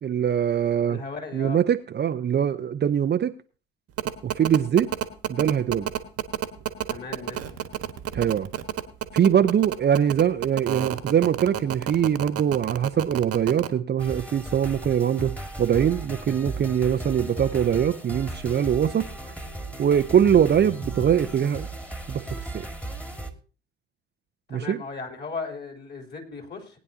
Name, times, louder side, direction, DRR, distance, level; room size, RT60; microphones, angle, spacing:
voice 1, 0.0-1.0 1.3-3.3 4.2-4.9 5.3-5.9 8.1-8.5 9.1-19.1 19.8-21.7 22.1-22.2 22.5-22.7 24.5-24.8, right 9 dB, 30° right, 9 dB, 0.7 m, -22 dB
voice 2, 0.9-1.6 6.9-7.4 24.5-26.8, left 4 dB, 30° left, 4 dB, 3.5 m, -36 dB
sound 1, 4.0-13.7, right 11 dB, 50° right, 1.4 m, -29 dB
sound 2, 14.0-23.3, right 1 dB, 5° left, 2.0 m, -36 dB
19.5 x 9.6 x 2.8 m, 0.36 s
hypercardioid pair, 60°, 32 cm